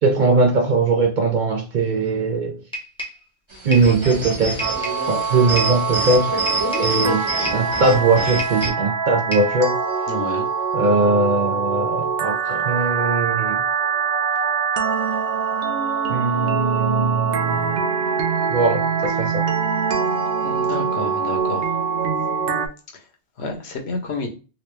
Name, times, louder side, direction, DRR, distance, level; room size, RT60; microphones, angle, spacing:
voice 1, 0.0-2.6 3.6-4.6 5.1-6.4 6.8-7.2 7.5-9.8 10.7-13.6 16.1-17.8 18.5-19.4, right 3 dB, 55° right, 0.6 m, -20 dB
sound 1, 2.7-3.2 3.7-4.0 4.6-5.1 5.6-5.8 6.5-7.0 7.4-7.7 8.4-8.9 9.3-9.6, equal, 5° left, 0.8 m, -31 dB
sound 2, 3.5-8.7, right 2 dB, 25° right, 1.2 m, -27 dB
sound 3, 4.6-22.7, right 6 dB, 80° right, 0.9 m, -23 dB
voice 2, 10.1-10.5 20.4-21.7 23.4-24.3, left 3 dB, 75° left, 1.0 m, -29 dB
3.0 x 2.7 x 3.1 m
omnidirectional pair, 1.1 m